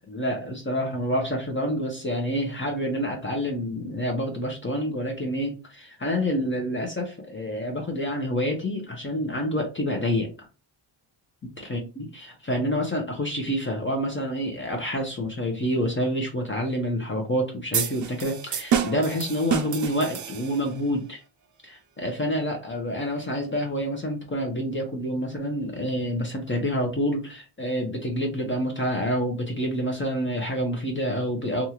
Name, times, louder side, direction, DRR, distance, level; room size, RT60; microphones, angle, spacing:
voice 1, 0.1-10.3 11.4-21.2 21.6-31.7, equal, 25° left, 0.8 m, -28 dB
sound 1, 17.7-20.8, right 8 dB, 40° right, 0.5 m, -28 dB
2.7 x 2.4 x 2.9 m
cardioid pair, 85°, 47 cm